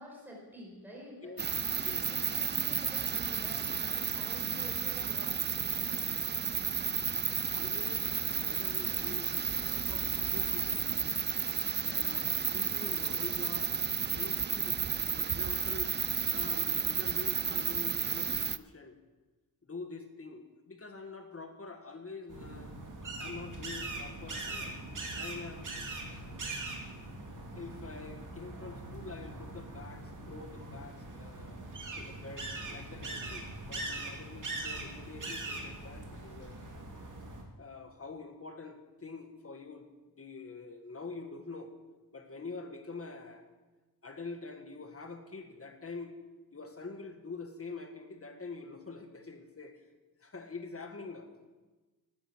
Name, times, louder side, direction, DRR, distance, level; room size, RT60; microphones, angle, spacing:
voice 1, 0.0-1.4 2.1-5.4 6.2-6.5, equal, 5° right, -3 dB, 4.7 m, -49 dB
sound 1, 1.4-18.6, right 6 dB, 30° right, 0.4 m, -32 dB
voice 2, 7.5-11.0 11.9-13.7 14.1-16.0 16.3-19.0 19.6-22.7 23.2-24.8 25.2-25.7 26.1-26.3 27.5-31.6 32.0-36.6 37.6-39.9 40.2-41.7 42.1-43.4 44.0-46.2 46.5-49.8 50.2-51.5, left 4 dB, 40° left, 5 dB, 1.8 m, -46 dB
sound 2, 22.3-37.4, right 2 dB, 55° right, 2.7 m, -41 dB
16.0 x 12.5 x 6.3 m, 1.2 s
wide cardioid pair, 150°, 37 cm